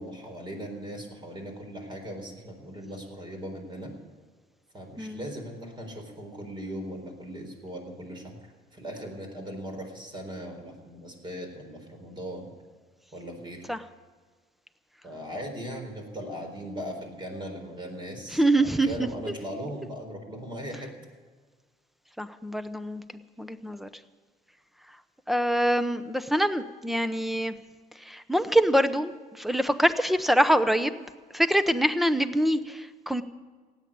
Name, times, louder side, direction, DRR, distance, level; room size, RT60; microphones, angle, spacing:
voice 1, 0.0-3.9 4.7-8.4 8.7-12.5 13.1-13.6 15.0-20.9, equal, 30° right, 4 dB, 4.1 m, -38 dB
voice 2, 5.0-5.3 13.7-13.8 18.3-19.1 22.2-23.0 23.4-23.9 25.3-27.5 28.1-29.1 29.4-31.1 31.3-33.2, right 1 dB, ahead, 12 dB, 0.8 m, -24 dB
16.5 x 9.5 x 8.6 m, 1.5 s
cardioid pair, 110°, 17 cm